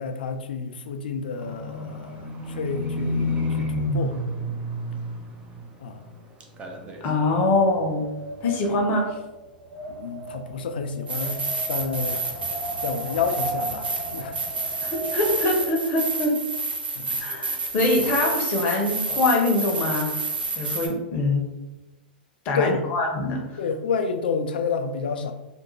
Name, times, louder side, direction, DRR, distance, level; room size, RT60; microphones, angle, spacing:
voice 1, 0.0-4.2 5.8-6.1 9.9-12.3 12.8-14.4 17.0-17.2 22.5-22.8 23.6-25.3, left 5 dB, 70° left, 7 dB, 0.3 m, -29 dB
Livestock farm animals working animals, 1.4-6.1 6.4-7.1 7.6-7.7, left 1 dB, 25° right, 0.4 m, -29 dB
Wind, 6.7-15.8, right 2 dB, 60° right, 1.0 m, -36 dB
voice 2, 7.0-8.1 8.4-9.2 14.8-16.4 17.2-20.1 20.6-21.4 22.4-23.4, left 2 dB, 40° left, 1 dB, 0.7 m, -23 dB
sound 1, 11.1-20.9, right 3 dB, 85° right, 0.6 m, -29 dB
2.4 x 2.1 x 3.0 m, 1.1 s
hypercardioid pair, 105°, 5 cm